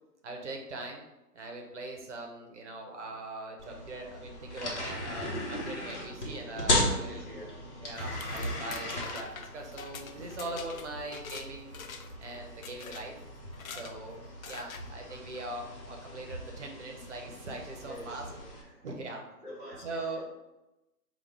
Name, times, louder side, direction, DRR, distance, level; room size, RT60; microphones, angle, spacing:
voice 1, 0.2-1.0 1.3-7.2 7.8-9.3 9.5-11.8 12.2-13.1 13.7-18.3 18.8-19.2 19.8-20.5, right 2 dB, 50° right, 2 dB, 0.8 m, -41 dB
sound 1, 3.6-18.6, left 1 dB, 45° left, 1.1 m, -37 dB
voice 2, 6.9-7.7 17.8-18.9 19.4-20.1, equal, ahead, -23 dB, 0.7 m, -47 dB
sound 2, 8.0-11.5 11.7-12.2 12.6-13.0 13.5-13.9 14.4-14.8, left 6 dB, 60° left, 0.5 m, -44 dB
3.4 x 2.4 x 4.5 m, 0.97 s
hypercardioid pair, 160°, 48 cm